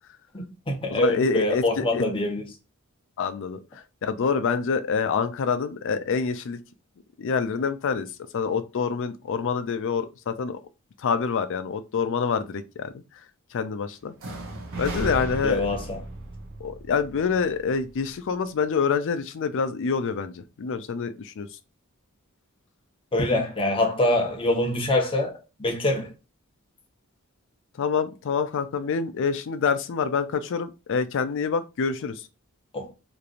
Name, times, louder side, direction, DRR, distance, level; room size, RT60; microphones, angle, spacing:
voice 1, 0.3-2.5 15.4-16.0 23.1-26.1 32.7-32.9, left 1 dB, 25° left, 0.7 m, -25 dB
voice 2, 0.9-2.0 3.2-6.6 7.2-8.1 8.3-10.6 11.0-12.9 13.5-14.1 14.8-15.6 16.6-21.5 27.8-32.2, left 5 dB, 60° left, 0.4 m, -26 dB
sound 1, 14.2-18.1, right 2 dB, 65° right, 0.7 m, -35 dB
3.0 x 2.5 x 2.4 m
head